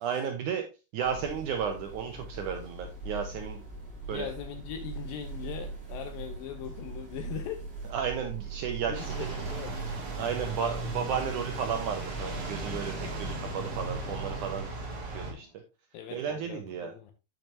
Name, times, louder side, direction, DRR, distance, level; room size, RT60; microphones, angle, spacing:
voice 1, 0.0-0.7 0.9-3.6 4.1-4.3 7.9-9.5 10.2-14.7 15.1-15.5 16.1-16.9, right 7 dB, 80° right, 5 dB, 1.8 m, -33 dB
sound 1, 1.0-14.6, right 2 dB, 15° right, 3.1 m, -40 dB
voice 2, 4.1-7.6 8.9-9.9 15.9-17.1, left 9 dB, 75° left, 7 dB, 2.3 m, -40 dB
sound 2, 8.9-15.3, right 3 dB, 45° right, 3.3 m, -37 dB
sound 3, 9.0-13.1 13.9-15.6, right 1 dB, 25° left, 4.1 m, -54 dB
8.9 x 7.8 x 2.7 m, 0.28 s
omnidirectional pair, 4.5 m